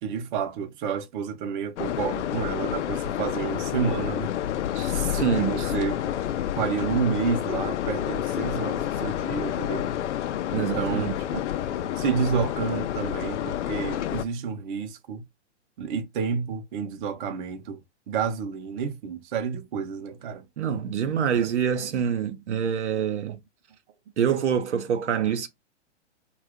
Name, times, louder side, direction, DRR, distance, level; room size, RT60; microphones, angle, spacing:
voice 1, 0.0-4.3 5.2-6.2 6.6-9.9 10.5-11.7 12.0-15.2 15.8-17.8 18.1-20.5 21.8-21.9 23.0-23.1, right 6 dB, 45° right, 0.7 m, -30 dB
sound 1, 1.8-14.2, left 11 dB, 80° left, 0.5 m, -29 dB
voice 2, 4.7-5.6 10.5-11.1 20.6-23.4 24.2-25.5, right 8 dB, 75° right, 0.8 m, -26 dB
2.7 x 2.4 x 3.5 m
hypercardioid pair, 135°, 35 cm